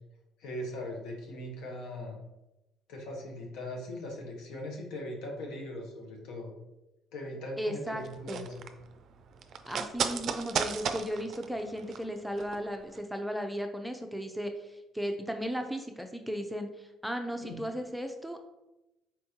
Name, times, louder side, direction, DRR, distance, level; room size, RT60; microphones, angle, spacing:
voice 1, 0.4-2.2 2.9-6.5 7.1-8.7 17.4-17.6, left 1 dB, 70° left, 0 dB, 1.0 m, -40 dB
voice 2, 7.6-8.0 8.3-8.5 9.7-18.5, equal, ahead, 5 dB, 0.5 m, -36 dB
sound 1, 8.0-12.6 12.9-13.0, right 7 dB, 60° right, 0.4 m, -35 dB
4.4 x 3.4 x 2.8 m, 0.95 s
hypercardioid pair, 60°, 0 cm